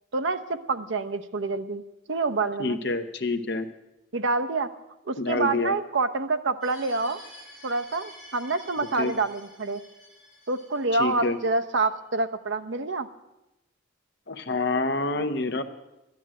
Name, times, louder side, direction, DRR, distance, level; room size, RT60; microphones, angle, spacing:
voice 1, 0.1-1.8 2.1-2.8 4.1-4.7 5.1-7.2 7.6-9.8 10.5-13.1, right 3 dB, 70° right, 9 dB, 0.7 m, -27 dB
voice 2, 2.6-3.7 5.2-5.7 9.0-9.1 11.0-11.4 14.3-15.6, left 3 dB, 55° left, 8 dB, 0.9 m, -27 dB
sound 1, 6.6-11.6, left 1 dB, ahead, 7.2 m, -49 dB
12.5 x 10.5 x 7.6 m, 0.95 s
head